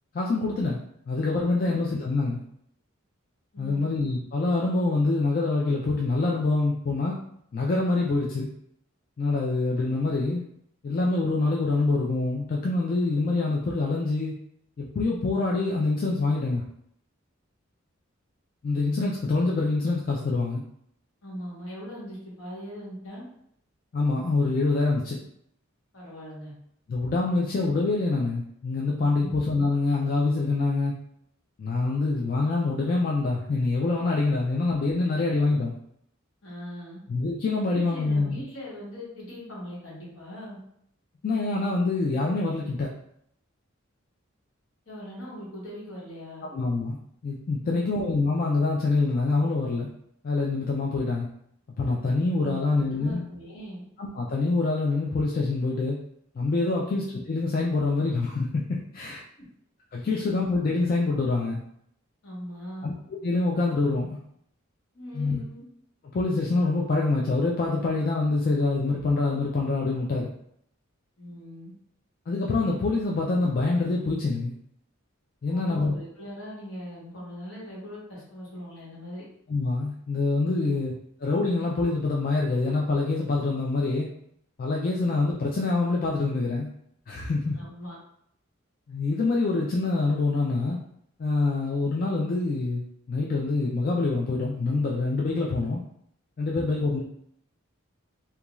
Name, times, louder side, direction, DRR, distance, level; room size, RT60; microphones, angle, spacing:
voice 1, 0.1-2.4 3.6-7.2 7.5-8.5 9.2-10.4 10.8-14.3 14.8-16.6 18.6-20.6 23.9-25.2 26.9-31.0 31.6-35.8 37.1-38.4 41.2-42.9 46.5-47.0 47.2-49.9 50.2-51.3 51.8-53.3 54.0-56.0 56.4-59.2 59.9-61.6 62.8-62.9 63.2-64.2 65.1-65.4 66.1-70.3 72.3-74.5 75.4-76.0 79.5-80.9 81.2-84.1 84.6-86.7 87.1-87.6 88.9-90.8 91.2-95.8 96.4-97.0, left 3 dB, 45° left, -3 dB, 0.3 m, -25 dB
voice 2, 21.2-23.2 25.9-26.5 29.1-29.3 36.4-37.0 37.7-40.6 44.9-46.5 47.6-47.9 52.4-52.6 52.9-53.8 56.7-56.9 60.1-60.2 62.2-62.9 64.9-65.6 71.2-71.7 75.4-79.2 87.4-88.0, equal, 65° left, -6 dB, 1.2 m, -40 dB
2.4 x 2.3 x 2.9 m, 0.72 s
head